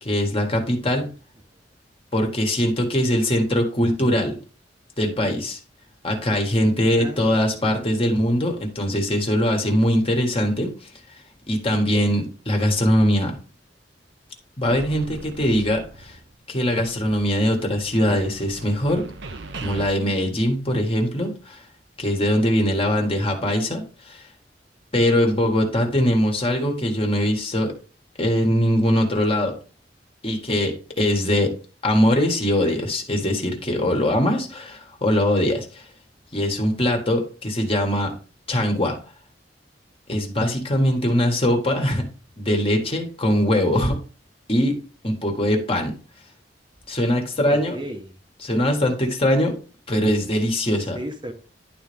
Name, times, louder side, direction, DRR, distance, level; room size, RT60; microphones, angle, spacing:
voice 1, 0.0-1.1 2.1-4.4 5.0-5.6 6.0-10.7 11.5-13.4 14.6-16.2 16.5-19.1 19.6-21.6 22.0-24.2 24.9-27.7 28.2-29.5 30.2-31.5 31.8-35.8 36.3-38.1 38.5-39.0 40.1-42.0 42.4-44.0 44.5-45.9 46.9-47.8 48.4-49.6 49.9-51.0, equal, 30° left, 3 dB, 1.7 m, -21 dB
voice 2, 6.8-7.7 22.9-23.1 41.2-41.3 47.4-48.2 50.9-51.3, equal, 25° right, 4 dB, 1.0 m, -36 dB
sound 1, 14.7-16.3 16.6-19.9, right 3 dB, 85° right, 1.0 m, -40 dB
11.0 x 4.1 x 3.5 m, 0.37 s
head